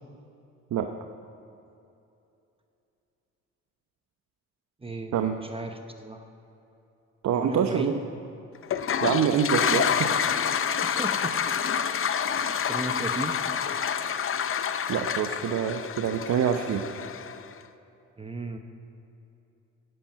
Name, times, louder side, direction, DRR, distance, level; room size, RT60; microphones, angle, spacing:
voice 1, 4.8-5.1 5.4-6.2 7.4-7.9 10.8-11.4 12.7-13.4 18.2-18.6, right 2 dB, 20° right, 5 dB, 1.0 m, -35 dB
voice 2, 7.2-7.9 9.0-10.1 14.9-16.8, right 8 dB, 65° right, 6 dB, 0.8 m, -26 dB
Toilet flush, 8.6-17.5, left 7 dB, 45° left, 0.7 m, -28 dB
11.0 x 10.0 x 9.1 m, 2.8 s
cardioid pair, 90°, 30 cm